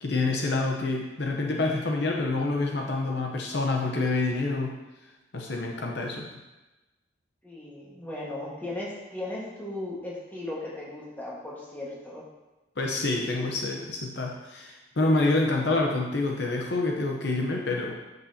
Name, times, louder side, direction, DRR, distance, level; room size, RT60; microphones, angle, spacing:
voice 1, 0.0-4.8 5.3-6.3 12.8-17.9, left 2 dB, 60° left, 0 dB, 0.8 m, -27 dB
voice 2, 7.4-12.2, left 2 dB, 10° left, -5 dB, 1.6 m, -37 dB
8.5 x 6.7 x 2.8 m, 1.1 s
head